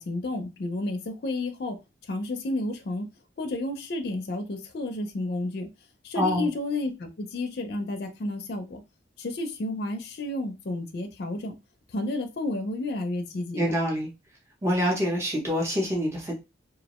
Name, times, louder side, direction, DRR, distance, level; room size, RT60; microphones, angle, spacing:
voice 1, 0.0-1.8 2.0-3.1 3.4-5.7 6.0-8.8 9.2-11.6 11.9-13.8, left 2 dB, 55° left, 0.4 m, -31 dB
voice 2, 6.2-6.5 13.6-14.1 14.6-16.3, equal, 15° right, 0.6 m, -26 dB
2.4 x 2.0 x 2.9 m
head